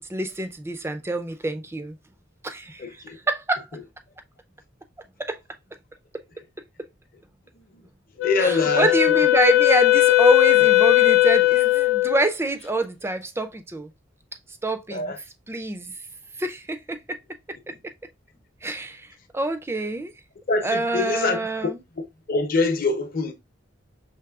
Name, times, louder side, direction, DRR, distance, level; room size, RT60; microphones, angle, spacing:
voice 1, 0.0-2.0 2.4-3.7 5.2-5.4 6.1-6.2 8.4-13.9 14.6-15.1 15.5-16.0 16.4-17.2 17.7-17.8 18.6-20.1 20.6-21.8, right 2 dB, 15° right, 0.4 m, -26 dB
voice 2, 2.8-3.2 7.5-7.7 8.2-8.9 14.9-15.2 20.5-21.4 22.3-23.3, left 3 dB, 45° left, 0.7 m, -24 dB
Wind instrument woodwind instrument, 8.2-12.3, left 17 dB, 85° left, 0.6 m, -18 dB
5.9 x 3.1 x 2.3 m
head